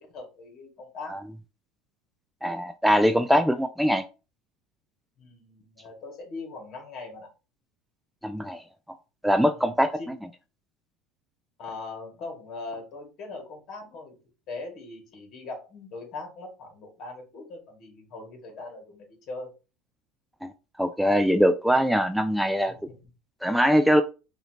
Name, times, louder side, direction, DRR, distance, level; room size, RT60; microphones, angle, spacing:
voice 1, 0.0-1.3 5.2-7.3 9.5-9.7 10.0-10.1 11.6-14.2 14.5-19.5, left 3 dB, 45° left, 2 dB, 2.2 m, -40 dB
voice 2, 2.4-4.0 8.2-8.6 9.2-9.9 20.4-20.5 20.8-22.7 23.4-24.0, equal, ahead, 8 dB, 0.3 m, -22 dB
5.5 x 2.9 x 2.9 m, 0.31 s
supercardioid pair, 110°, 0 cm